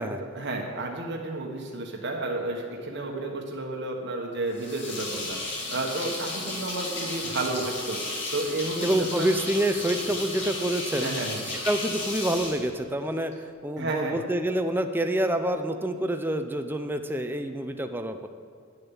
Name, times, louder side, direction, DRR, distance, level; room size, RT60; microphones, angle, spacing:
voice 1, 0.3-9.3 11.0-11.4 13.8-14.2, right 2 dB, 60° right, 0 dB, 1.1 m, -32 dB
sound 1, 4.5-13.3, left 2 dB, 60° left, 2.4 m, -34 dB
voice 2, 8.8-11.1 11.6-18.3, right 1 dB, 10° right, 7 dB, 0.5 m, -27 dB
10.0 x 6.8 x 7.1 m, 2.3 s
head